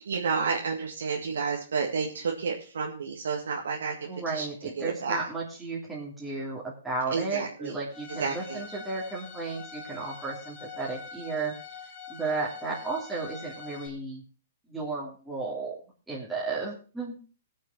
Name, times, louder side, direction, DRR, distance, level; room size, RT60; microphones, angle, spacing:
voice 1, 0.1-4.4 4.8-5.2 7.1-7.7 8.2-8.6, right 5 dB, 85° right, 0 dB, 1.9 m, -30 dB
voice 2, 4.1-11.5 12.1-14.2 14.7-15.8 16.1-17.2, right 3 dB, 5° right, -6 dB, 3.1 m, -34 dB
Bowed string instrument, 7.9-13.9, left 5 dB, 35° left, 2.5 m, -44 dB
18.0 x 6.5 x 4.6 m, 0.36 s
hypercardioid pair, 145°, 0 cm